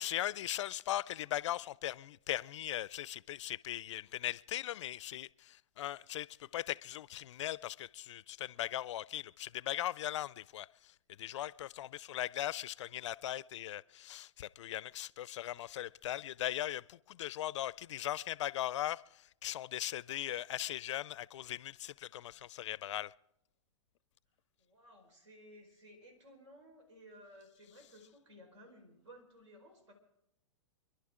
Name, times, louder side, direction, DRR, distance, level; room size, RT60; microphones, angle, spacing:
voice 1, 0.0-6.3 6.5-10.7 11.2-19.0 19.4-23.1, left 13 dB, 70° left, 0.4 m, -39 dB
voice 2, 24.6-29.9, equal, 70° right, 4.7 m, -57 dB
28.0 x 11.5 x 3.7 m
hypercardioid pair, 120°, 16 cm